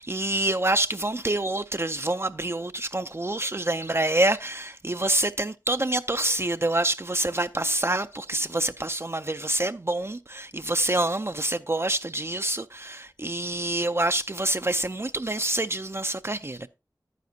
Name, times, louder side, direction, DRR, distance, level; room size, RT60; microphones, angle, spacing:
voice 1, 0.0-16.7, right 1 dB, 35° right, 0.4 m, -27 dB
10.5 x 9.3 x 2.7 m
wide cardioid pair, 45°, 8 cm